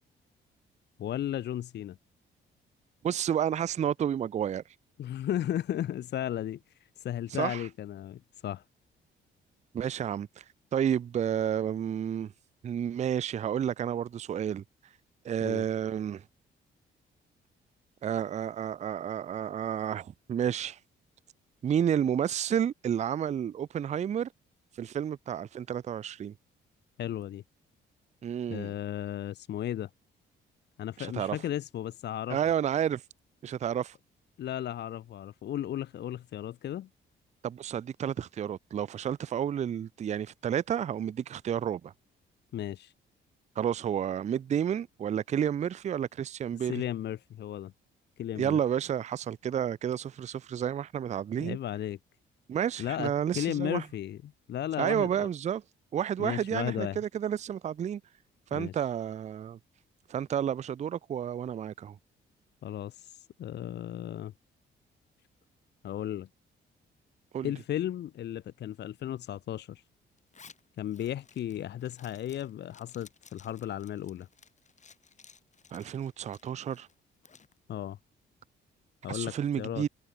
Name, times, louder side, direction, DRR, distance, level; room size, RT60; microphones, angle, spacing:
voice 1, 1.0-2.0 5.0-8.6 15.4-15.6 27.0-27.4 28.5-29.9 30.8-32.4 34.4-36.9 42.5-42.9 46.7-47.7 48.2-48.6 51.4-52.0 52.8-55.3 56.2-57.0 58.5-58.8 62.6-64.3 65.8-66.3 67.4-69.8 70.8-74.3 77.7-78.0 79.0-79.8, left 11 dB, 60° left, 0.7 m, -35 dB
voice 2, 3.0-4.6 7.3-7.7 9.7-10.4 10.7-12.3 12.6-14.6 15.2-16.2 18.0-20.8 21.6-24.3 24.8-26.3 28.2-28.7 31.0-31.4 32.3-33.0 33.4-34.0 37.4-41.9 43.6-46.8 48.3-51.6 52.5-53.8 54.8-55.6 55.9-58.0 58.5-59.6 60.1-62.0 67.3-67.5 75.7-76.9 79.1-79.9, right 9 dB, 35° right, 0.4 m, -31 dB
Zipper (clothing), 70.2-77.5, left 5 dB, 35° left, 2.3 m, -57 dB
cardioid pair, 90°, 20 cm